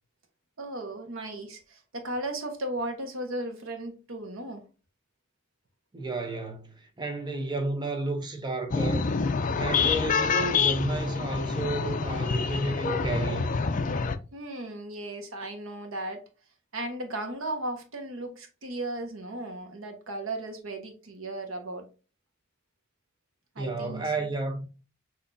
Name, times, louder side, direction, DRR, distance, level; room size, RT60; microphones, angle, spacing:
voice 1, 0.6-4.6 14.3-16.2 16.7-21.9 23.5-24.3, right 1 dB, 90° right, 1.2 m, -36 dB
voice 2, 5.9-9.1 9.5-13.6 23.6-24.7, right 2 dB, 20° right, 0.8 m, -32 dB
sound 1, 8.7-14.2, left 5 dB, 40° left, 0.4 m, -27 dB
6.5 x 2.9 x 2.6 m
head